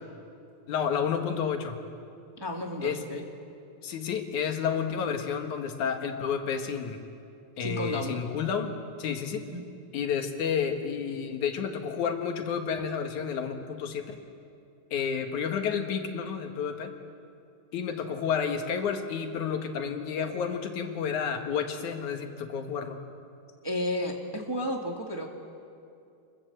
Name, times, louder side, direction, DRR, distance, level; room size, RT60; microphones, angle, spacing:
voice 1, 0.7-1.8 2.8-3.0 3.8-7.0 7.6-8.7 9.0-9.5 9.9-14.2 14.9-16.9 17.7-23.0, left 7 dB, 85° left, 5 dB, 3.1 m, -30 dB
voice 2, 2.4-3.2 7.6-8.2 9.4-9.6 23.6-25.3, left 1 dB, 10° right, 1 dB, 1.4 m, -32 dB
27.5 x 21.5 x 8.0 m, 2.5 s
omnidirectional pair, 3.3 m